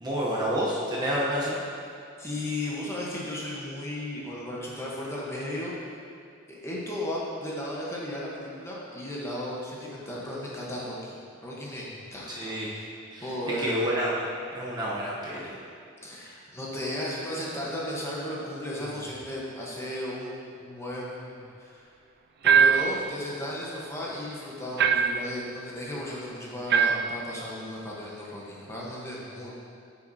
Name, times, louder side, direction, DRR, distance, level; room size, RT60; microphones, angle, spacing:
voice 1, 0.0-1.6 12.4-12.7 13.1-13.3 13.6-14.1 14.6-15.5, equal, 20° right, -6 dB, 0.8 m, -28 dB
voice 2, 2.2-5.7 6.5-11.1 11.4-12.8 13.2-13.8 16.0-21.8 22.4-29.5, left 1 dB, 15° left, -5 dB, 1.0 m, -35 dB
sound 1, 22.4-23.0 24.8-25.3 26.7-27.1, right 6 dB, 50° right, 0.3 m, -21 dB
8.5 x 5.9 x 2.7 m, 2.4 s
head